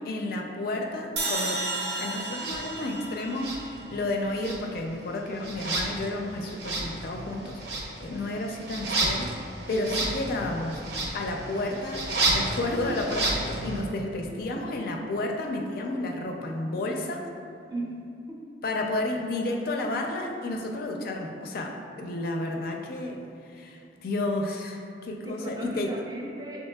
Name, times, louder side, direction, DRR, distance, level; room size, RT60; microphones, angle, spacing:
voice 1, 0.0-1.6 2.0-7.6 8.0-9.3 9.7-10.8 11.1-17.3 18.6-25.9, left 2 dB, 55° left, 2 dB, 0.4 m, -31 dB
sound 1, 1.2-4.4, right 2 dB, 90° right, 0.9 m, -33 dB
sound 2, 2.3-2.6 3.3-4.1 4.4-13.8, right 2 dB, 65° right, 0.6 m, -31 dB
voice 2, 17.7-18.0 18.3-18.5 25.2-26.7, right 2 dB, 20° right, -2 dB, 0.5 m, -37 dB
6.2 x 3.0 x 2.2 m, 2.5 s
head